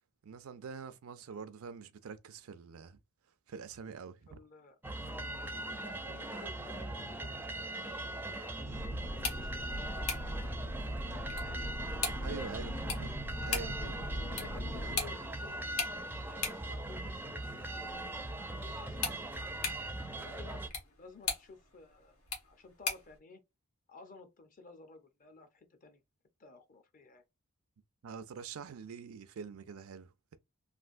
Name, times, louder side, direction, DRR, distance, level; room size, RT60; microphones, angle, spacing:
voice 1, 0.2-3.0 3.5-4.4 12.2-13.2 13.4-13.9 28.0-30.4, right 5 dB, 70° right, 0.4 m, -45 dB
voice 2, 4.3-7.4 7.8-8.0 8.3-10.5 12.3-12.4 12.8-13.2 13.6-18.0 18.5-19.5 20.1-23.4 23.9-26.0 26.4-27.2, left 3 dB, 40° left, 0.6 m, -54 dB
sound 1, 4.8-20.7, right 1 dB, 10° right, 0.4 m, -40 dB
sound 2, 8.6-15.0, equal, 65° left, 0.8 m, -40 dB
sound 3, 9.0-23.2, left 5 dB, 85° left, 1.2 m, -42 dB
3.3 x 2.5 x 2.5 m
head